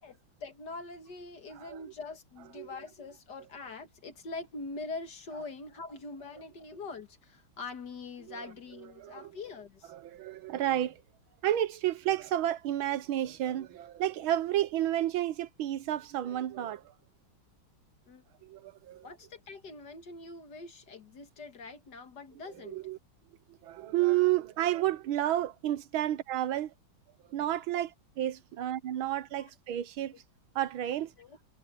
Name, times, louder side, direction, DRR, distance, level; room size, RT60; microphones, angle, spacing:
voice 1, 0.0-9.9 18.1-18.2 19.0-22.8 29.0-29.5 30.1-30.2 31.2-31.4, left 3 dB, 55° left, 2.3 m, -44 dB
voice 2, 9.0-9.3 10.0-11.0 11.4-16.9 18.4-19.0 22.6-23.0 23.6-26.7 27.3-27.9 28.2-30.1 30.5-31.1, right 13 dB, 85° right, 1.7 m, -31 dB
omnidirectional pair, 2.2 m